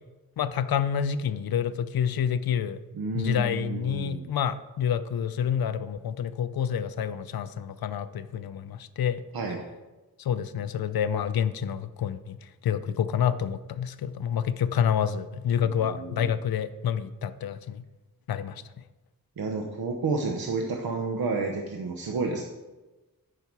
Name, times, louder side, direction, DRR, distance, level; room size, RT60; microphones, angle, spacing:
voice 1, 0.4-2.8 3.1-9.2 10.2-12.4 12.6-17.8 18.3-18.6, left 8 dB, 85° left, 13 dB, 0.6 m, -28 dB
voice 2, 2.9-4.3 9.3-9.6 15.6-16.3 19.4-22.4, right 3 dB, 85° right, 2 dB, 1.0 m, -31 dB
12.5 x 5.6 x 4.7 m, 1.1 s
cardioid pair, 65°, 35 cm